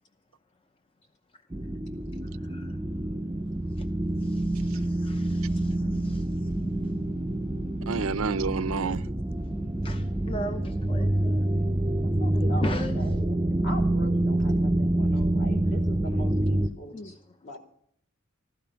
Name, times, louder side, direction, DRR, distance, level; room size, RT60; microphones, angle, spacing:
sound 1, 1.5-16.7, right 1 dB, 15° right, 0.6 m, -27 dB
voice 1, 2.4-2.8 3.8-3.9 4.2-6.5 8.9-9.0 9.8-11.4 12.4-12.9 16.9-17.1, left 1 dB, 25° left, 0.6 m, -39 dB
voice 2, 7.9-9.0, right 5 dB, 80° right, 0.6 m, -28 dB
voice 3, 12.2-13.4 13.6-17.6, equal, 60° left, 3.4 m, -42 dB
15.5 x 12.5 x 5.7 m
head